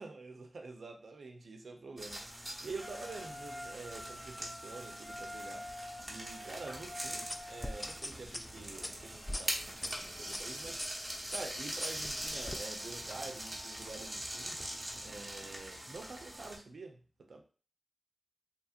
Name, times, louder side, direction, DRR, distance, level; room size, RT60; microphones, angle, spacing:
voice 1, 0.0-14.6 15.0-17.0 17.3-17.4, right 3 dB, 80° right, 0.5 m, -47 dB
sound 1, 2.0-16.6, right 1 dB, 25° right, 0.9 m, -43 dB
Wind instrument woodwind instrument, 2.8-8.0, left 1 dB, 5° left, 0.9 m, -47 dB
sound 2, 7.3-10.4 10.8-11.0 11.3-12.6, left 1 dB, 20° left, 0.3 m, -41 dB
2.9 x 2.8 x 2.4 m
cardioid pair, 60°, 0 cm